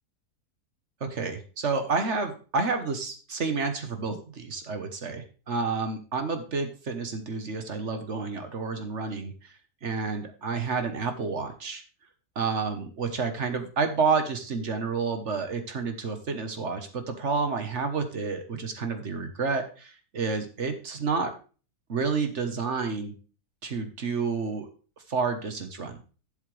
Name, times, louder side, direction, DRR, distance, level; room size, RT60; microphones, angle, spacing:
voice 1, 1.0-9.6 9.8-11.8 12.3-21.3 21.9-23.1 23.6-24.7 25.1-26.0, right 4 dB, 50° right, 7 dB, 1.4 m, -30 dB
11.5 x 7.3 x 3.3 m, 0.36 s
omnidirectional pair, 1.6 m